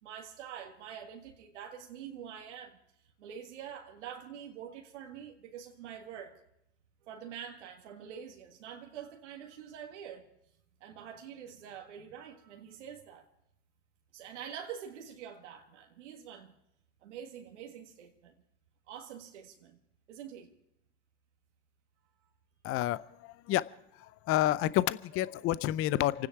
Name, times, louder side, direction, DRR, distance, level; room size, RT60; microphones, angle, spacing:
voice 1, 0.0-2.8 3.2-6.4 7.0-10.3 10.8-13.3 14.1-16.5 17.0-18.3 18.9-19.8 20.1-20.5, right 8 dB, 85° right, 1.9 m, -46 dB
voice 2, 22.6-23.7 24.0-26.3, left 14 dB, 40° left, 0.6 m, -29 dB
29.0 x 9.7 x 4.6 m
hypercardioid pair, 95°, 35 cm